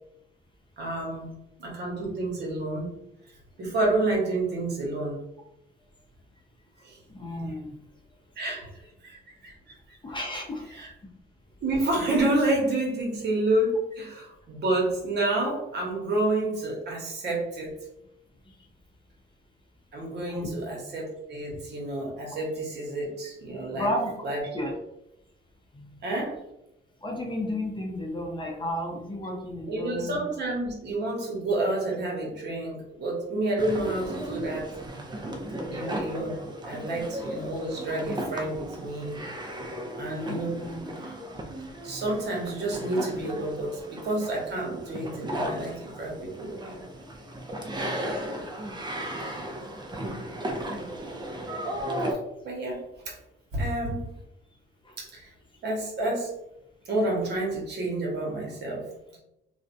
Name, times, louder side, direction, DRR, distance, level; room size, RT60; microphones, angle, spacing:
voice 1, 0.8-1.3 1.6-2.9 3.6-5.2 6.8-7.0 8.4-8.7 9.0-9.8 10.7-10.9 11.6-17.8 19.9-23.9 24.2-24.4 26.0-26.4 29.7-34.7 35.7-39.2 40.0-40.7 41.0-41.1 41.8-46.8 52.4-52.8 53.1-53.2 53.5-54.1 55.0-55.3 55.6-56.3 56.9-58.8 59.1-59.2, right 2 dB, 60° right, -2 dB, 0.9 m, -29 dB
voice 2, 7.1-7.8 10.0-10.7 20.3-20.5 23.7-24.1 24.5-24.7 25.7-25.9 27.0-30.2 40.6-40.9 48.9-49.1 54.8-54.9, left 1 dB, 25° left, 0 dB, 0.6 m, -32 dB
sound 1, 33.6-52.1, right 1 dB, 20° right, 0.5 m, -35 dB
2.5 x 2.1 x 2.5 m, 0.84 s
cardioid pair, 90°, 20 cm